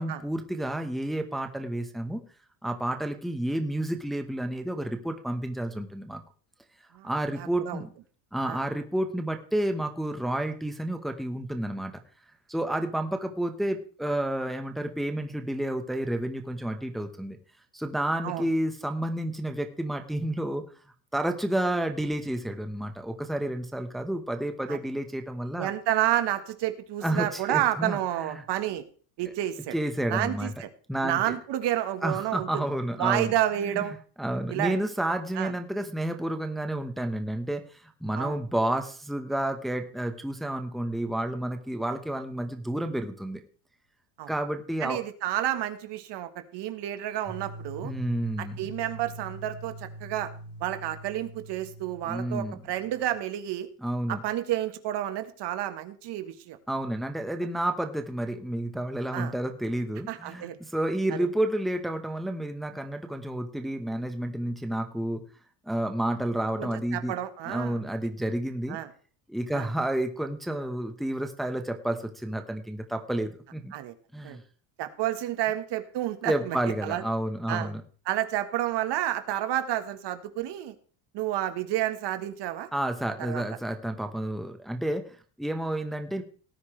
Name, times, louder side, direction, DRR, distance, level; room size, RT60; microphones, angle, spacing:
voice 1, 0.0-2.2 2.6-6.2 7.0-7.9 8.3-11.9 12.5-17.4 17.7-20.6 21.1-25.7 27.0-28.4 29.7-30.5 30.9-31.4 32.0-33.3 33.7-33.9 34.2-43.4 44.3-45.0 47.8-48.6 52.0-52.5 53.8-54.2 56.7-65.2 65.7-67.1 67.4-68.8 69.3-73.7 74.1-74.4 76.2-77.8 82.7-86.2, right 1 dB, ahead, 5 dB, 1.2 m, -30 dB
voice 2, 7.4-7.8 8.4-8.6 18.2-18.5 24.7-24.8 25.6-28.8 29.2-29.7 30.1-30.7 31.0-32.6 33.0-33.9 34.5-34.8 35.3-35.5 38.2-38.4 44.2-44.3 44.8-47.9 48.4-50.3 50.6-53.7 54.1-56.6 59.1-59.3 60.1-60.5 61.1-61.3 66.6-67.8 68.7-68.9 69.5-69.7 73.7-73.9 74.2-74.4 74.8-76.6 76.8-77.0 77.5-77.7 78.1-80.7 81.1-82.7 83.3-83.4, right 13 dB, 55° right, 9 dB, 1.6 m, -30 dB
sound 1, 47.2-53.1, right 1 dB, 55° left, 5.2 m, -43 dB
18.0 x 9.6 x 3.3 m, 0.40 s
cardioid pair, 135°, 49 cm